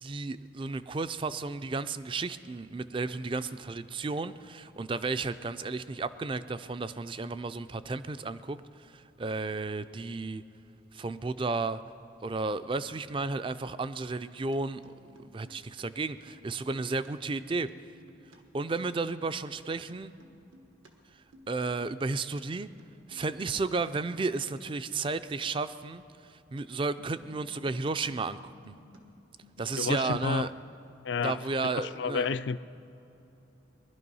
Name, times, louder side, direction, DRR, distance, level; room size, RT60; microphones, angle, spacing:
voice 1, 0.0-8.6 8.9-10.4 10.9-11.8 12.2-14.9 15.2-17.7 18.5-20.1 21.5-22.7 23.1-26.0 26.3-28.7 29.6-30.5 31.2-32.3, right 3 dB, 25° right, 0.3 m, -33 dB
sound 1, 14.2-14.6 14.8-15.8 16.1-16.4 16.7-17.1 17.5-18.4 18.6-19.6 19.9-20.9 21.2-21.5 21.8-22.2 22.6-23.5 23.9-24.1 24.4-24.6 27.0-27.7 28.0-29.0 29.3-30.1, equal, 90° right, 1.5 m, -56 dB
voice 2, 29.8-30.5 31.0-31.4 31.7-32.6, left 5 dB, 65° left, 0.4 m, -30 dB
20.5 x 11.5 x 5.5 m
head